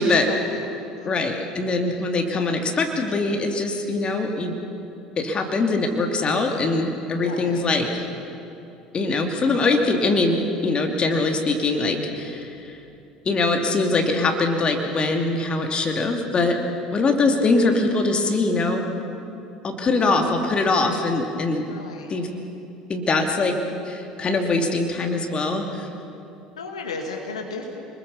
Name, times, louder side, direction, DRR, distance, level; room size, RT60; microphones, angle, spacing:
voice 1, 0.0-1.3 7.1-7.6 19.8-20.0 21.7-22.1 26.6-27.8, left 3 dB, 75° left, 3 dB, 2.0 m, -36 dB
voice 2, 1.0-4.6 5.2-7.9 8.9-12.7 13.2-16.6 16.9-18.9 19.6-21.6 22.1-22.3 22.9-23.5 23.8-25.9, left 3 dB, 30° left, 3 dB, 2.7 m, -22 dB
28.5 x 21.0 x 7.1 m, 2.7 s
figure-of-eight pair, 65°, 3 cm